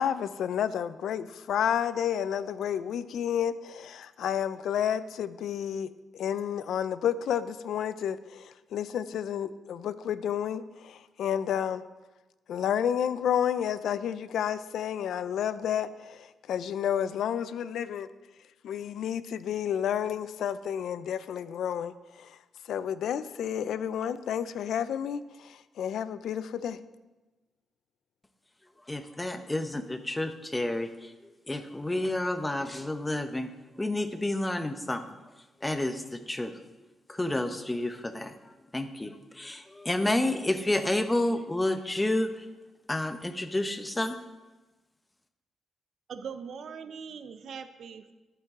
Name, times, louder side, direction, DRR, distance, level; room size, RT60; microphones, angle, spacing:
voice 1, 0.0-11.8 12.5-18.1 18.6-22.4 22.7-26.8, left 9 dB, 80° left, 15 dB, 0.4 m, -31 dB
voice 2, 28.9-31.1 31.5-33.5 33.8-35.0 35.6-36.5 37.1-42.5 42.9-44.2, left 1 dB, 15° left, 9 dB, 0.8 m, -30 dB
voice 3, 46.1-48.1, right 6 dB, 60° right, 10 dB, 0.7 m, -41 dB
11.5 x 9.1 x 3.6 m, 1.1 s
cardioid pair, 120°, 0 cm